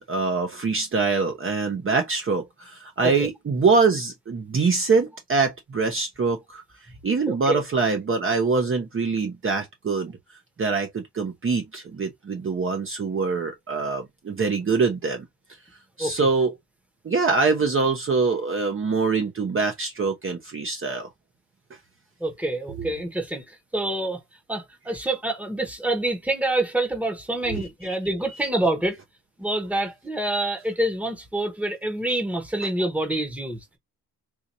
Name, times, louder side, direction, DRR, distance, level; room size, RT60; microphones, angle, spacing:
voice 1, 0.0-6.6 7.0-10.2 10.6-15.2 16.0-16.5 17.0-21.1 22.8-22.9 27.5-28.0, right 4 dB, 30° right, 0.8 m, -24 dB
voice 2, 7.3-7.6 16.0-16.1 22.2-24.2 24.5-29.0 29.4-33.8, right 1 dB, 5° right, 1.1 m, -27 dB
4.5 x 2.5 x 2.6 m
cardioid pair, 135°, 41 cm